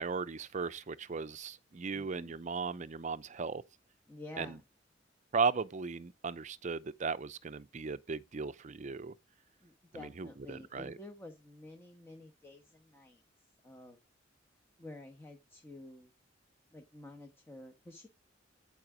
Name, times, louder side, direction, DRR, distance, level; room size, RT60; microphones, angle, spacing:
voice 1, 0.0-3.6 4.4-4.6 5.3-9.1 10.0-11.0, right 5 dB, 40° right, 0.6 m, -36 dB
voice 2, 1.9-2.4 4.1-4.6 9.6-13.2 13.6-14.0 14.8-16.1 16.7-18.1, left 2 dB, 15° left, 1.2 m, -50 dB
11.0 x 4.9 x 4.9 m
head